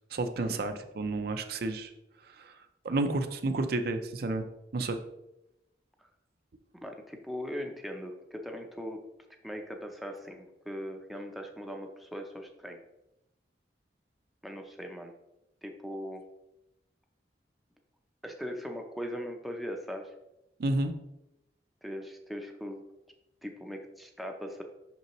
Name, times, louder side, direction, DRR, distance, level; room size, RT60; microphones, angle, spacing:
voice 1, 0.1-1.9 2.3-2.6 2.8-4.5 4.7-5.0 20.6-20.9, right 2 dB, 60° right, 7 dB, 0.5 m, -31 dB
voice 2, 6.8-9.0 9.4-12.8 14.4-15.1 15.6-16.2 18.2-20.1 21.8-22.8 23.4-24.6, equal, ahead, 2 dB, 0.5 m, -40 dB
6.0 x 5.3 x 3.0 m, 0.90 s
head